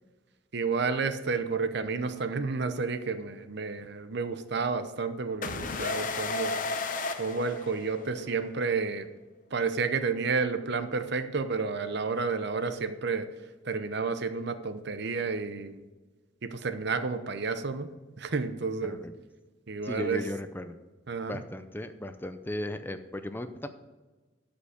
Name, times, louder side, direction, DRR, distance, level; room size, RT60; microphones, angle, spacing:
voice 1, 0.5-6.6 7.2-9.1 9.5-13.3 13.6-15.9 16.4-19.0 19.7-20.2 21.1-21.4, right 4 dB, 60° right, 10 dB, 0.8 m, -31 dB
sound 1, 5.4-8.2, left 3 dB, 45° left, 0.8 m, -33 dB
voice 2, 18.8-19.1 19.8-20.8 21.3-23.7, left 1 dB, 10° left, 9 dB, 0.5 m, -36 dB
12.5 x 5.2 x 5.1 m, 1.2 s
head